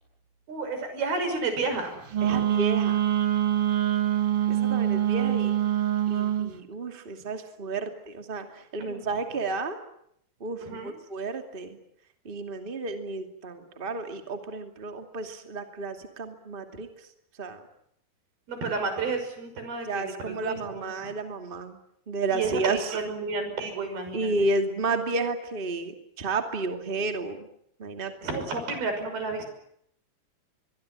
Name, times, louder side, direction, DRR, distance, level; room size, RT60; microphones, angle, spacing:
voice 1, 0.5-2.4 6.4-6.6 8.8-9.1 10.6-11.0 18.5-21.1 22.3-24.5 28.2-29.5, right 3 dB, 90° right, 7 dB, 7.8 m, -31 dB
Wind instrument woodwind instrument, 2.1-6.5, right 11 dB, 55° right, 1.8 m, -24 dB
voice 2, 2.2-3.0 4.5-5.5 6.1-9.8 10.4-11.8 12.2-16.9 17.4-17.6 19.8-21.8 22.1-23.0 24.1-27.5 27.8-28.1, right 3 dB, 15° right, 6 dB, 2.2 m, -31 dB
24.5 x 22.5 x 9.9 m, 0.72 s
omnidirectional pair, 4.3 m